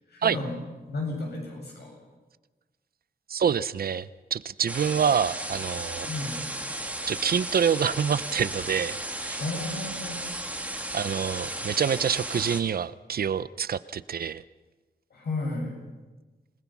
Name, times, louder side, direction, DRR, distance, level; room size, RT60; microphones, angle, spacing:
voice 1, 0.1-0.5 0.9-2.0 6.1-6.4 9.4-10.2 15.1-15.8, left 2 dB, 75° left, 0 dB, 7.9 m, -33 dB
voice 2, 3.3-6.1 7.1-9.0 9.2-9.4 10.9-14.4, right 7 dB, 65° right, 16 dB, 0.6 m, -26 dB
sound 1, 4.7-12.6, right 1 dB, 10° right, 1.7 m, -34 dB
28.0 x 19.5 x 6.0 m, 1.2 s
wide cardioid pair, 165°, 17 cm